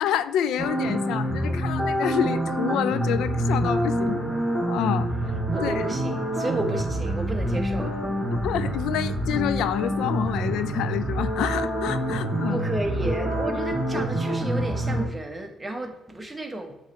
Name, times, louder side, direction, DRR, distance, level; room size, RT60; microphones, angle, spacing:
voice 1, 0.0-4.2 4.7-5.1 5.6-5.7 8.4-12.6, left 10 dB, 85° left, 13 dB, 0.3 m, -28 dB
sound 1, 0.6-15.0, right 1 dB, 5° left, 2.3 m, -26 dB
voice 2, 1.4-1.9 5.5-7.9 12.5-16.8, right 1 dB, 15° right, 4 dB, 1.1 m, -32 dB
8.1 x 3.2 x 4.0 m, 0.92 s
cardioid pair, 90°, 0 cm